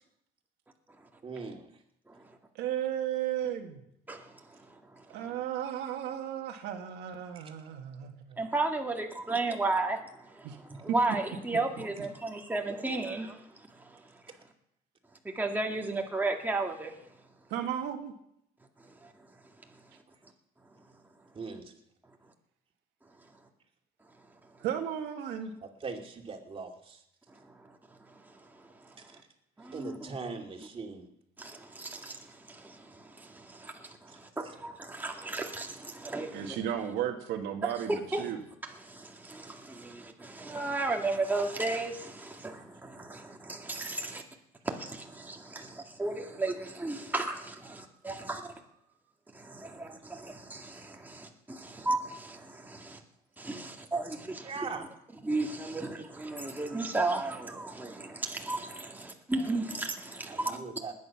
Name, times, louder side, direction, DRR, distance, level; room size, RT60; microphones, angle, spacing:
voice 1, 1.2-1.8 7.3-7.5 21.3-21.7 25.6-27.0 29.0-29.2 29.7-31.1 34.1-34.5 54.4-54.9 60.3-60.9, right 4 dB, 35° right, 2 dB, 2.6 m, -41 dB
voice 2, 2.6-3.7 5.1-8.4 10.4-10.6 10.9-11.0 17.5-18.1 24.6-25.5 36.3-38.4, right 10 dB, 85° right, 4 dB, 1.8 m, -34 dB
voice 3, 4.1-5.2 8.4-10.0 10.3-14.0 15.3-16.9 19.0-19.1 27.5-27.7 28.1-29.2 29.6-30.0 31.4-36.6 37.9-38.2 38.8-44.2 44.6-48.5 49.3-53.0 53.4-54.5 55.2-60.6, right 2 dB, 10° right, 1 dB, 2.0 m, -34 dB
20.0 x 9.6 x 5.9 m, 0.77 s
cardioid pair, 110°, 17 cm